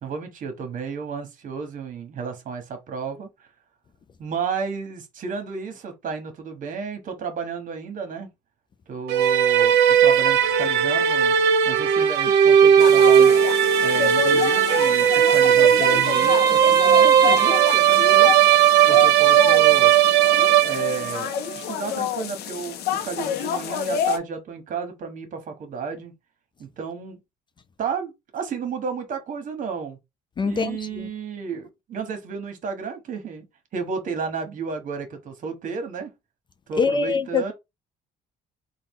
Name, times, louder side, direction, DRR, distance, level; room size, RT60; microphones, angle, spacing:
voice 1, 0.0-3.3 4.2-8.3 8.9-11.4 11.6-13.4 13.8-18.3 18.9-19.9 20.6-26.1 26.6-27.2 27.8-30.0 30.4-33.4 33.7-36.1 36.7-37.5, right 5 dB, 50° right, 1.3 m, -32 dB
sound 1, 9.1-21.2, right 9 dB, 85° right, 0.7 m, -17 dB
sound 2, 12.8-24.2, left 8 dB, 75° left, 0.7 m, -29 dB
voice 2, 30.4-30.8 36.8-37.5, left 4 dB, 30° left, 0.4 m, -23 dB
3.7 x 2.3 x 3.7 m
cardioid pair, 110°, 17 cm